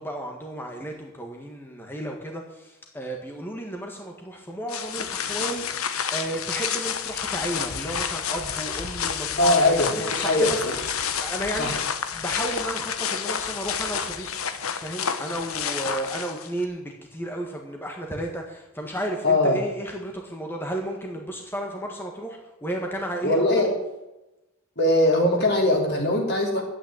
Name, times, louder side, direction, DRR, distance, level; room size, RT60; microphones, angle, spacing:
voice 1, 0.0-10.6 11.2-11.8 12.1-14.3 14.7-23.6, right 1 dB, 10° left, 1 dB, 1.6 m, -33 dB
sound 1, 4.7-16.6, left 7 dB, 75° left, 1.1 m, -29 dB
voice 2, 9.4-10.8 11.6-11.8 19.2-19.6 23.2-23.7 24.8-26.6, left 1 dB, 50° left, 1 dB, 3.5 m, -21 dB
11.5 x 9.1 x 9.0 m, 0.97 s
head